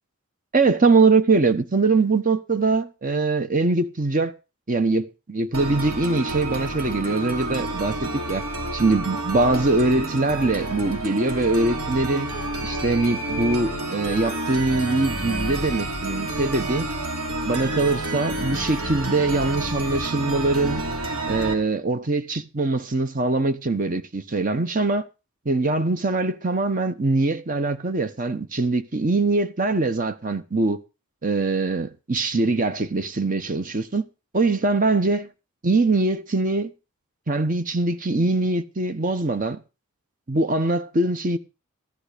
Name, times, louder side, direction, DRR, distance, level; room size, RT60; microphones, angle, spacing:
voice 1, 0.5-4.3 4.7-8.4 8.7-12.3 12.6-16.9 17.4-20.8 21.3-25.1 25.4-30.8 31.2-34.0 34.3-35.3 35.6-36.7 37.3-39.6 40.3-41.4, right 3 dB, 40° right, 1.1 m, -22 dB
sound 1, 5.5-21.5, right 1 dB, 85° right, 2.9 m, -29 dB
14.5 x 11.0 x 5.1 m
head